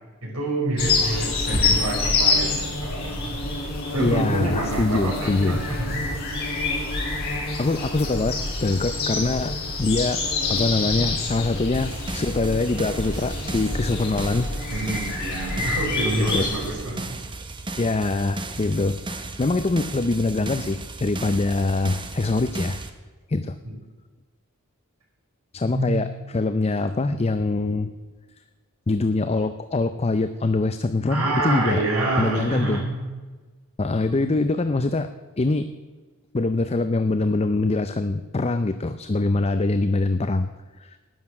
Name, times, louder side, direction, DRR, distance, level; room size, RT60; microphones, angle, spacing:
voice 1, 0.2-3.5 3.9-6.1 14.7-17.1 23.6-23.7 25.6-25.9 31.1-33.1, right 2 dB, 85° right, -2 dB, 5.1 m, -27 dB
sound 1, 0.8-16.7, left 3 dB, 45° left, 4.9 m, -27 dB
voice 2, 4.0-5.6 7.6-14.5 16.2-16.4 17.8-22.8 23.3-23.6 25.5-26.1 26.3-27.9 28.9-31.8 32.2-32.8 33.8-35.1 35.4-35.7 36.3-40.5 40.8-41.0, left 2 dB, 30° left, 10 dB, 0.5 m, -24 dB
sound 2, 11.7-22.9, right 2 dB, 20° right, 1.0 m, -35 dB
13.0 x 9.8 x 6.0 m, 1.3 s
head